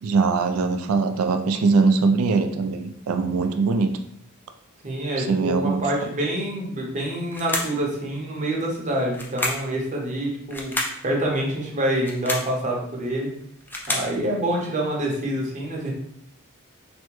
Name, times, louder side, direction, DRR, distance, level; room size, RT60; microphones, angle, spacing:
voice 1, 0.0-3.9 5.2-5.8, right 4 dB, 75° right, 8 dB, 0.3 m, -21 dB
voice 2, 4.8-10.7 11.0-13.3 13.9-15.9, right 1 dB, 35° right, -1 dB, 0.7 m, -26 dB
sound 1, 7.3-7.8 9.1-9.7 10.5-11.0 11.9-12.5 13.4-14.1, left 1 dB, 10° left, 0.3 m, -29 dB
3.4 x 2.1 x 3.0 m, 0.71 s
head